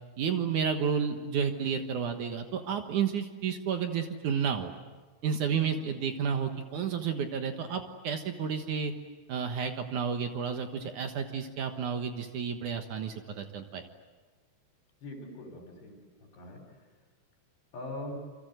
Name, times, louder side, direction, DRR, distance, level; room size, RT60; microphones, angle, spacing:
voice 1, 0.2-4.7 5.2-8.9 9.3-13.8, right 7 dB, 70° right, 6 dB, 1.9 m, -31 dB
voice 2, 15.0-16.6 17.7-18.2, left 1 dB, 60° left, 2 dB, 5.7 m, -42 dB
28.5 x 25.5 x 8.0 m, 1.3 s
omnidirectional pair, 5.6 m